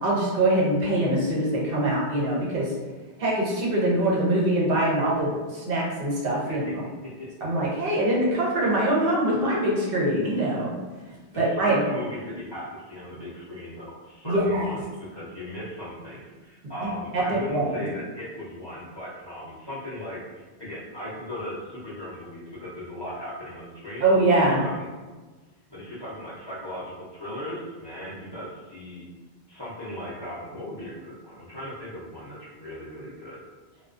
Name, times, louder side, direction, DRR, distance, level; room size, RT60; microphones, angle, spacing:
voice 1, 0.0-2.7 3.2-6.6 7.4-10.7 11.3-11.8 14.2-14.7 17.1-17.2 17.5-17.9 24.0-24.6, right 1 dB, 65° right, -5 dB, 0.8 m, -23 dB
voice 2, 11.3-24.0 24.4-24.9 25.7-29.0 29.5-33.4, left 1 dB, 35° left, -10 dB, 0.4 m, -37 dB
2.3 x 2.2 x 2.4 m, 1.3 s
omnidirectional pair, 1.1 m